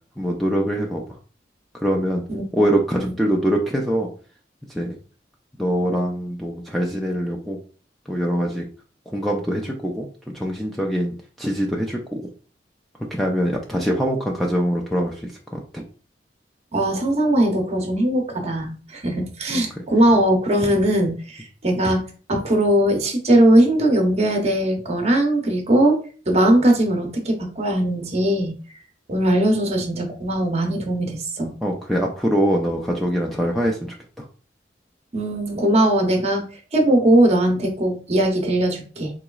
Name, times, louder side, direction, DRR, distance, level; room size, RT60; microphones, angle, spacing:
voice 1, 0.2-1.2 1.8-2.2 2.5-4.1 4.7-5.0 5.6-7.6 8.1-8.7 9.1-10.1 10.3-12.2 13.1-15.8 19.5-19.8 31.6-34.3, equal, ahead, -1 dB, 0.4 m, -23 dB
voice 2, 16.7-22.0 22.3-26.0 26.3-28.5 29.1-31.5 35.1-36.4 36.7-39.1, right 1 dB, 35° right, 3 dB, 0.8 m, -19 dB
3.8 x 3.0 x 2.3 m, 0.40 s
head